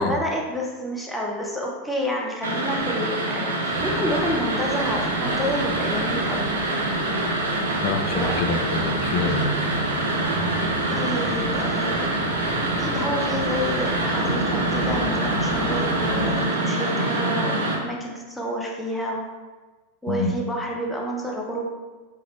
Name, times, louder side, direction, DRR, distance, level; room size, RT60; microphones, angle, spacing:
voice 1, 0.0-6.5 8.1-8.4 10.9-12.3 12.8-19.2 20.0-21.7, equal, 5° left, -2 dB, 0.7 m, -29 dB
sound 1, 2.4-17.8, right 2 dB, 65° right, 0.6 m, -25 dB
sound 2, 3.7-16.3, right 1 dB, 50° right, 1.0 m, -35 dB
voice 2, 7.8-9.5 20.1-20.3, left 4 dB, 45° left, 5 dB, 0.4 m, -26 dB
3.6 x 3.4 x 3.1 m, 1.3 s
figure-of-eight pair, 90°, 0 cm